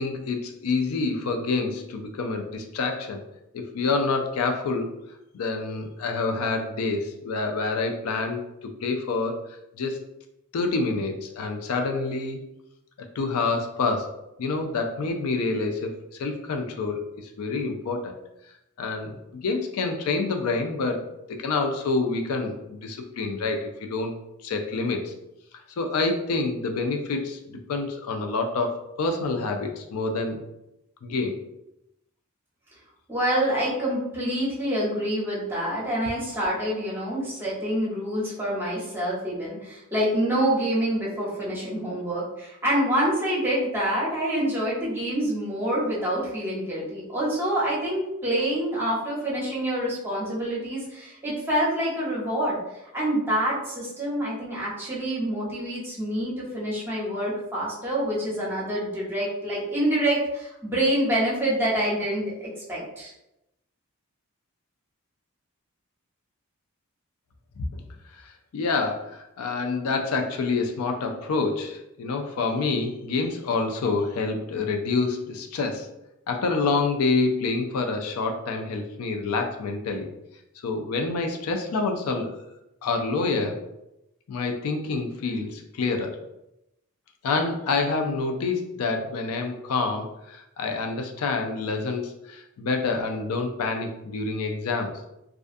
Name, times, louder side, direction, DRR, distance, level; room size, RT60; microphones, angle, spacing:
voice 1, 0.0-3.2 3.5-4.9 5.3-9.4 9.8-10.0 10.5-12.4 13.0-14.1 14.4-18.1 18.8-21.0 21.3-24.1 24.4-25.1 25.8-30.4 31.0-31.4 67.6-67.8 68.1-75.9 76.3-80.1 80.6-82.4 82.8-83.6 84.3-86.2 87.2-94.9, left 3 dB, 85° left, 4 dB, 0.4 m, -27 dB
voice 2, 33.1-52.6 52.9-63.1, right 1 dB, 10° right, -7 dB, 0.9 m, -26 dB
2.4 x 2.3 x 2.5 m, 0.87 s
head